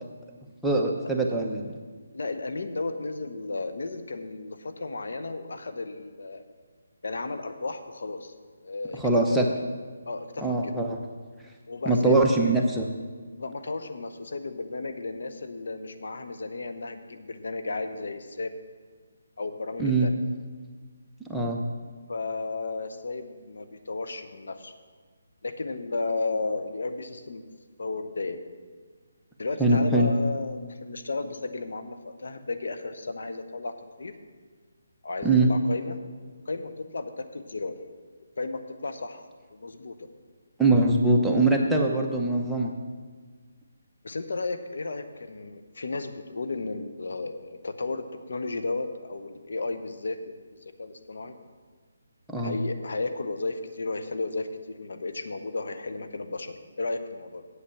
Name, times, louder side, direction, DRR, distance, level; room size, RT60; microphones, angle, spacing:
voice 1, 0.6-1.7 9.0-9.5 10.4-11.0 11.9-12.8 19.8-20.1 21.2-21.6 29.6-30.1 35.2-35.5 40.6-42.7 52.3-52.6, right 2 dB, ahead, -2 dB, 0.9 m, -22 dB
voice 2, 2.1-6.4 7.0-8.3 8.6-9.4 10.1-10.8 11.7-12.5 13.4-18.5 19.4-20.2 22.1-24.7 25.4-27.4 27.8-28.4 29.4-33.7 34.0-34.1 35.0-36.0 36.5-37.8 38.4-40.1 44.0-51.3 52.4-57.5, left 3 dB, 70° left, 7 dB, 1.0 m, -34 dB
8.2 x 8.0 x 7.2 m, 1.5 s
figure-of-eight pair, 150°, 0 cm